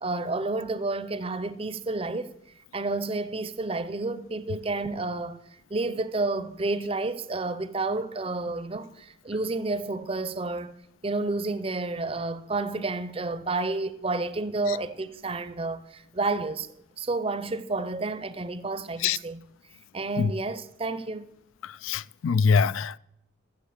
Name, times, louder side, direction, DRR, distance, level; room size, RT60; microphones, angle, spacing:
voice 1, 0.0-2.3 2.7-5.4 5.7-10.7 11.0-16.7 17.0-19.4 19.9-21.3, right 3 dB, 25° right, 0.6 m, -30 dB
voice 2, 21.6-23.0, left 5 dB, 75° left, 0.4 m, -24 dB
14.5 x 7.2 x 6.5 m
head